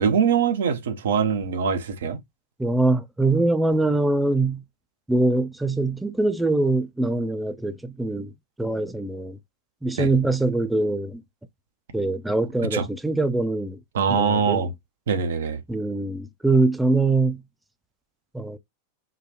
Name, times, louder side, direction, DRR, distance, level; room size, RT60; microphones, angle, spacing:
voice 1, 0.0-2.2 10.0-10.1 12.7-12.9 13.9-14.7 15.1-15.6, right 6 dB, 70° right, 0.8 m, -23 dB
voice 2, 2.6-4.6 5.1-8.3 8.6-9.4 9.8-11.2 11.9-13.8 14.1-14.7 15.7-17.4 18.3-18.6, right 2 dB, 5° right, 0.5 m, -23 dB
3.9 x 2.3 x 2.8 m
figure-of-eight pair, 90°, 0 cm